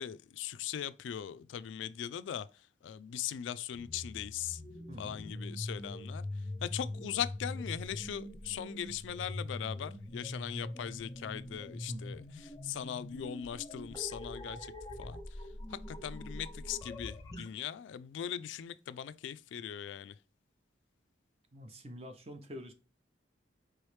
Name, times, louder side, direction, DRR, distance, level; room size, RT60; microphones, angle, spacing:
voice 1, 0.0-2.5 2.8-4.6 5.0-6.3 6.6-14.7 15.0-15.4 15.7-20.1, left 9 dB, 75° left, 0.3 m, -40 dB
sound 1, 3.7-17.5, left 1 dB, 15° left, 0.5 m, -43 dB
voice 2, 4.9-5.2 11.9-12.0 21.5-22.7, equal, 30° right, 0.6 m, -46 dB
4.7 x 3.1 x 3.2 m
head